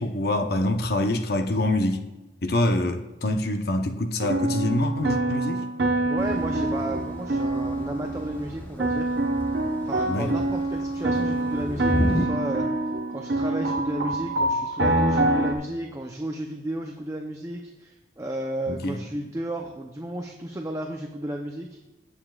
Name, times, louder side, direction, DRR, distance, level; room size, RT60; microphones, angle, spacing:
voice 1, 0.0-2.0 2.4-5.7 10.0-10.3 18.7-19.0, left 1 dB, 60° left, 6 dB, 0.8 m, -25 dB
sound 1, 4.2-8.5 8.8-15.5, right 2 dB, 70° right, 1.0 m, -26 dB
voice 2, 6.0-9.2 9.8-12.7 13.1-21.8, right 1 dB, 15° right, 2 dB, 0.6 m, -33 dB
Thunder / Rain, 6.2-12.3, left 1 dB, 10° left, 1.0 m, -33 dB
17.0 x 7.0 x 2.4 m, 1.1 s
head